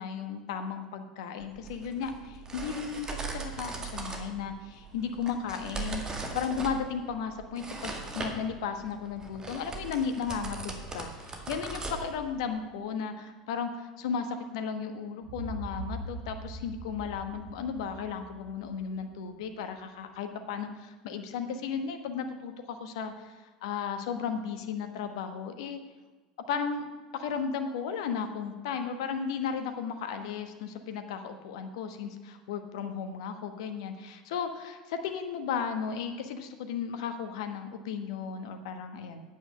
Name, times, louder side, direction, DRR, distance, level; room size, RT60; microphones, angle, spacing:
voice 1, 0.0-23.3 23.6-25.8 26.5-26.9 27.1-39.2, left 6 dB, 60° left, 7 dB, 1.2 m, -35 dB
sound 1, 1.4-12.6, right 3 dB, 20° right, 2.1 m, -40 dB
sound 2, 15.2-19.1, right 2 dB, 85° right, 3.6 m, -42 dB
9.1 x 8.8 x 6.3 m, 1.3 s
figure-of-eight pair, 75°, 3 cm